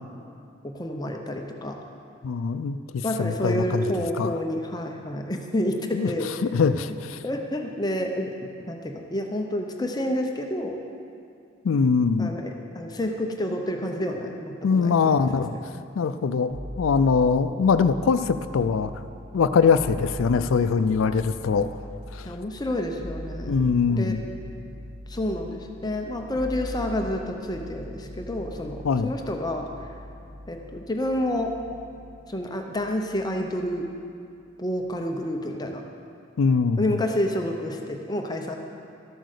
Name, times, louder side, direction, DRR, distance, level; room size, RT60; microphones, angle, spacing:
voice 1, 0.6-1.8 3.0-6.3 7.2-8.3 8.7-10.8 12.2-14.9 15.3-15.4 22.2-23.6 23.9-24.2 25.1-29.7 30.5-31.5 32.3-33.9 34.6-35.8 36.8-38.6, left 1 dB, 20° left, 3 dB, 0.7 m, -29 dB
voice 2, 2.2-3.8 4.2-4.3 5.9-6.1 6.5-7.2 11.6-12.3 14.6-15.5 16.0-19.0 19.3-21.8 22.1-22.3 23.5-24.2 28.8-29.1 36.4-36.9, left 5 dB, 85° left, 10 dB, 0.4 m, -22 dB
sound 1, 16.5-33.9 34.3-35.0, equal, 35° right, 0.6 m, -41 dB
13.0 x 7.9 x 6.6 m, 2.5 s
head